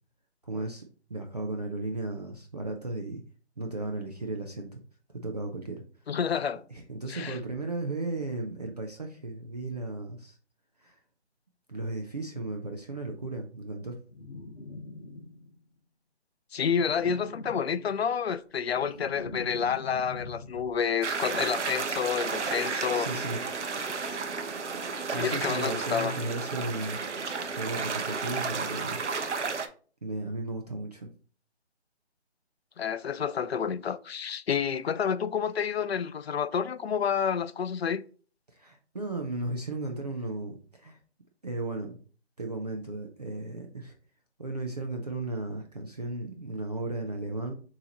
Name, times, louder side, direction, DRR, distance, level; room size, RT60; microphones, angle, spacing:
voice 1, 0.4-0.8 1.1-3.2 3.6-4.8 5.1-5.8 6.7-10.4 10.8-11.0 11.7-14.0 22.9-23.4 25.1-27.0 27.5-29.0 30.0-31.1 38.5-41.0 41.4-42.0 42.4-43.9 44.4-47.5, right 2 dB, 35° right, 0.5 m, -35 dB
voice 2, 6.1-6.6 7.1-7.4 16.5-23.1 25.2-26.2 32.8-38.0, left 7 dB, 60° left, 0.5 m, -29 dB
sound 1, 14.1-15.7 16.6-18.1 18.5-20.9, left 2 dB, 40° left, 1.5 m, -44 dB
sound 2, 21.0-29.7, right 4 dB, 80° right, 0.8 m, -32 dB
6.4 x 2.8 x 2.9 m
figure-of-eight pair, 155°, 35 cm